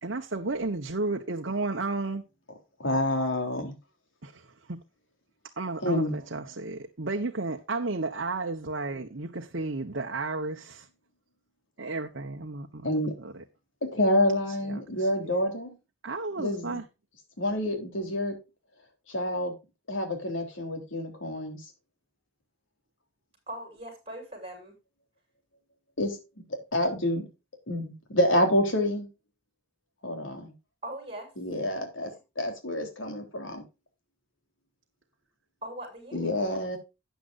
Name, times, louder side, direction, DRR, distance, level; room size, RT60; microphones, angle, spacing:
voice 1, 0.0-2.2 4.2-4.8 5.6-10.9 11.8-12.9 13.2-13.4 14.7-15.1 16.0-16.8, right 3 dB, 70° right, 1.1 m, -33 dB
voice 2, 2.8-3.7 5.8-6.1 12.8-13.1 13.9-15.8 16.4-16.8 17.4-18.3 19.1-19.5 19.9-21.6 26.0-26.2 26.7-27.3 27.7-29.1 30.0-30.5 31.4-33.6 36.1-36.8, left 1 dB, 80° left, 3.7 m, -28 dB
voice 3, 23.5-24.7 30.8-31.3 32.0-32.2 35.6-36.7, right 1 dB, 30° right, 6.4 m, -40 dB
13.0 x 9.2 x 2.6 m
head